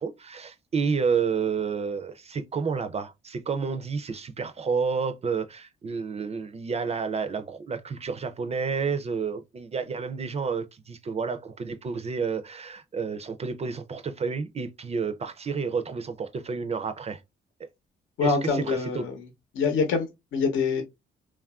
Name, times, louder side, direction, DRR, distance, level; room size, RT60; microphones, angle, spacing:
voice 1, 0.0-17.2 17.6-17.7 18.2-18.3 18.6-19.0, right 5 dB, 30° right, 0.4 m, -30 dB
voice 2, 18.2-19.3 19.5-20.8, left 5 dB, 80° left, 0.8 m, -25 dB
3.2 x 2.3 x 2.3 m
cardioid pair, 90°, 20 cm